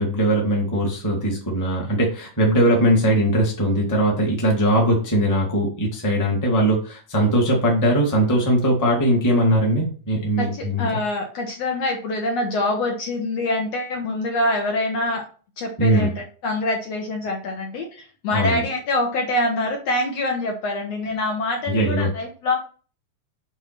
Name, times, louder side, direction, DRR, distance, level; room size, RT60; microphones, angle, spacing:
voice 1, 0.0-10.8 15.8-16.1 18.3-18.6 21.7-22.1, right 1 dB, 10° left, -1 dB, 1.3 m, -20 dB
voice 2, 10.4-15.2 15.6-22.6, left 2 dB, 65° left, 1 dB, 1.9 m, -25 dB
7.3 x 3.6 x 5.9 m, 0.39 s
omnidirectional pair, 3.8 m